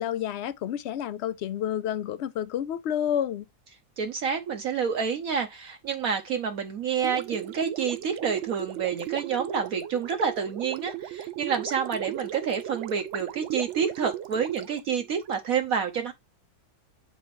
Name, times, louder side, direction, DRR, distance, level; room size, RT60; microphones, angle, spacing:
voice 1, 0.0-3.5, left 10 dB, 70° left, 0.6 m, -29 dB
voice 2, 4.0-16.1, right 6 dB, 65° right, 1.1 m, -28 dB
Gurgling, 7.0-15.3, right 12 dB, 90° right, 0.6 m, -36 dB
8.2 x 4.3 x 3.1 m
omnidirectional pair, 1.8 m